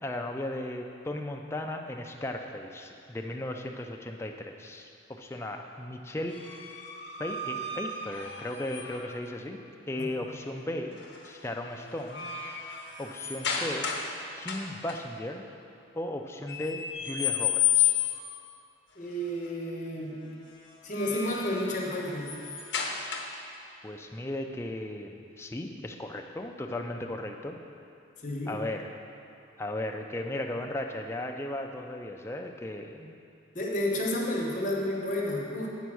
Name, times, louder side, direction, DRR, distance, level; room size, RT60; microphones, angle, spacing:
voice 1, 0.0-6.8 7.2-9.6 9.9-11.0 11.2-12.3 13.0-13.9 14.4-15.5 15.9-17.9 23.8-27.6 28.5-28.9 29.6-33.1, left 1 dB, 15° left, 2 dB, 0.4 m, -36 dB
sound 1, 6.3-9.2 11.0-11.3 11.7-14.1 14.4-15.0 16.5-18.4 20.7-23.5, left 8 dB, 65° left, 0.9 m, -32 dB
voice 2, 19.0-20.2 20.8-22.3 28.2-28.5 33.5-35.7, left 1 dB, 40° left, -2 dB, 1.0 m, -31 dB
8.2 x 4.4 x 6.2 m, 2.6 s
head